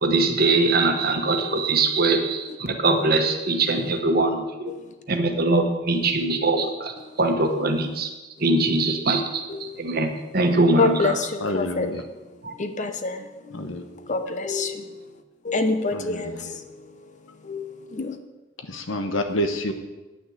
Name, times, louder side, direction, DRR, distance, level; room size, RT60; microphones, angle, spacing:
voice 1, 0.0-4.7 5.1-8.1 8.4-11.2 12.4-12.5, right 2 dB, 50° right, 5 dB, 1.2 m, -22 dB
voice 2, 9.5-10.0 10.8-11.9 12.5-15.1 15.4-18.2, left 3 dB, 40° left, 8 dB, 0.9 m, -28 dB
voice 3, 11.4-12.0 13.5-13.8 15.9-16.5 18.7-19.7, left 1 dB, 85° left, 6 dB, 1.2 m, -28 dB
9.3 x 6.2 x 8.0 m, 1.1 s
head